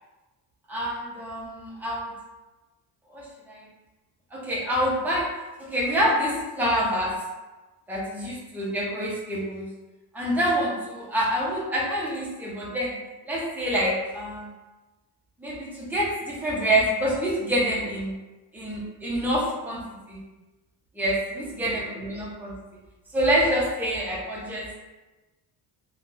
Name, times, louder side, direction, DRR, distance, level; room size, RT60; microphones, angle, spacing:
voice 1, 0.7-2.1 3.1-3.7 4.3-5.3 5.6-7.1 7.9-9.7 10.1-13.0 13.3-14.5 15.4-18.1 18.5-19.8 20.1-20.2 20.9-22.5 23.1-24.8, equal, 5° right, -6 dB, 0.6 m, -26 dB
3.3 x 2.3 x 2.5 m, 1.1 s
cardioid pair, 150°, 41 cm